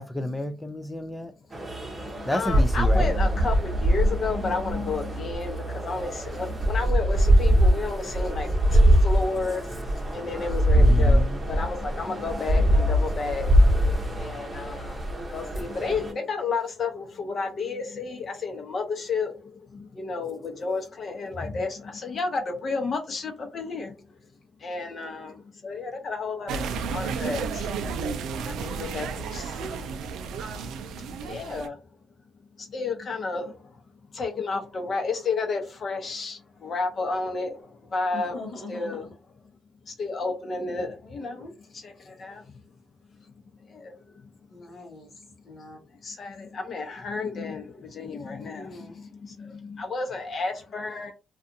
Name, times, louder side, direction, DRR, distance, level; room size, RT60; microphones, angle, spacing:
voice 1, 0.0-1.3 2.3-3.2 10.8-11.4, left 1 dB, 10° left, 0.4 m, -30 dB
sound 1, 1.5-16.1, equal, 25° right, 0.8 m, -23 dB
voice 2, 2.0-24.1 24.6-27.7 28.4-29.9 30.5-31.8 32.6-33.8 34.1-38.4 38.7-39.1 39.9-41.4 41.7-42.6 43.7-44.3 46.0-48.8 49.2-51.1, left 4 dB, 45° left, 0.9 m, -32 dB
sound 2, 26.5-31.7, right 5 dB, 80° right, 0.4 m, -32 dB
voice 3, 38.1-39.1 41.0-41.5 42.4-42.6 43.1-43.3 44.5-45.8 48.4-49.3, left 3 dB, 70° left, 1.0 m, -43 dB
2.4 x 2.4 x 2.7 m
cardioid pair, 90°, 0 cm